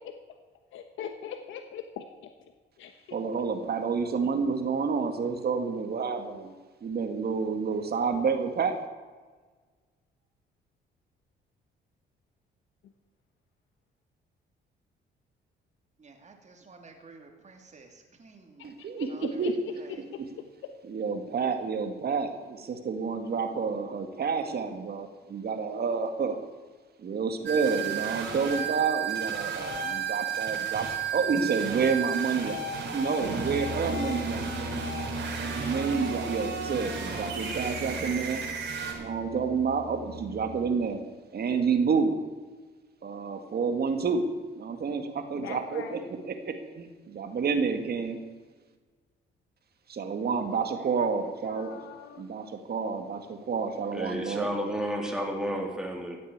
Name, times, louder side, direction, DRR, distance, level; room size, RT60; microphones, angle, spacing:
voice 1, 0.7-2.1 2.4-2.5 2.8-3.4 12.8-12.9 18.6-20.7 45.3-46.0 51.0-52.3, left 8 dB, 85° left, 7 dB, 1.1 m, -42 dB
voice 2, 3.1-6.5 6.8-8.8 18.6-19.1 19.4-19.5 20.9-26.4 27.0-30.9 31.1-34.8 35.3-38.4 39.0-41.0 41.3-42.1 43.0-44.3 44.6-48.2 49.9-51.8 52.2-54.5, right 5 dB, 50° right, 7 dB, 2.1 m, -29 dB
voice 3, 16.0-18.7 19.1-20.1, right 4 dB, 35° right, 3 dB, 2.9 m, -52 dB
sound 1, 27.4-38.9, right 6 dB, 70° right, 4.0 m, -33 dB
Brass instrument, 33.2-40.7, right 1 dB, 90° right, 2.1 m, -38 dB
voice 4, 53.9-56.2, equal, 5° right, 1 dB, 3.4 m, -31 dB
15.5 x 8.3 x 8.9 m, 1.4 s
cardioid pair, 90°, 20 cm